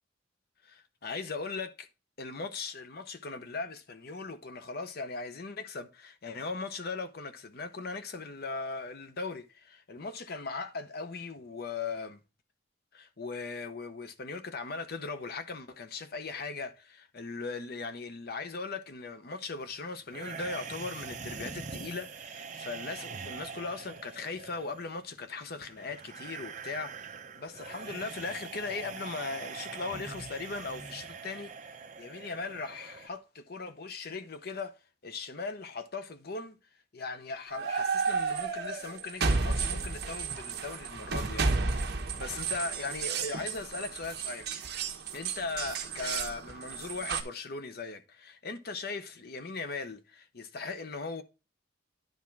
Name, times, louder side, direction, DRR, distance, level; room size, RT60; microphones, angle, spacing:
voice 1, 0.6-1.9 2.2-12.2 12.9-31.5 32.0-34.7 35.0-36.6 36.9-44.5 45.1-51.2, left 4 dB, 55° left, 0.7 m, -39 dB
sound 1, 20.1-33.1, right 5 dB, 40° right, 0.7 m, -43 dB
sound 2, 37.5-47.2, right 4 dB, 55° right, 1.1 m, -32 dB
10.5 x 3.6 x 5.8 m
head